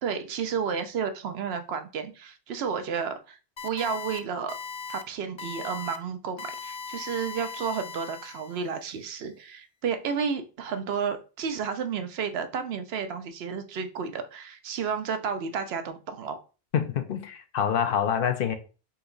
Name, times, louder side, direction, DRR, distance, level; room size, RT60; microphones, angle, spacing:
voice 1, 0.0-3.4 3.6-4.5 4.9-16.4, right 6 dB, 85° right, 0.9 m, -31 dB
sound 1, 3.6-4.2 4.5-5.0 5.4-6.0 6.4-8.7, left 5 dB, 50° left, 0.3 m, -39 dB
voice 2, 16.7-18.5, left 8 dB, 65° left, 0.8 m, -26 dB
4.2 x 2.9 x 3.8 m
omnidirectional pair, 1.0 m